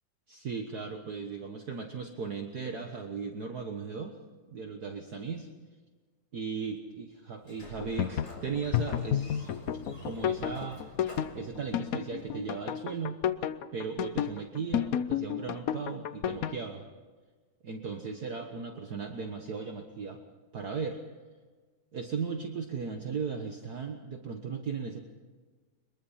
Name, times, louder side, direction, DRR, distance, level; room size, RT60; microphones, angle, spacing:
voice 1, 0.3-4.1 4.5-5.5 6.3-9.5 10.0-10.8 11.3-13.2 13.7-16.9 17.6-20.2 20.5-21.0 21.9-25.0, right 5 dB, 50° right, 3 dB, 1.8 m, -37 dB
Sliding door, 7.4-13.1, left 1 dB, 35° left, 4.4 m, -47 dB
sound 1, 7.6-16.6, left 10 dB, 60° left, 0.9 m, -31 dB
23.0 x 22.5 x 5.7 m, 1.4 s
omnidirectional pair, 2.2 m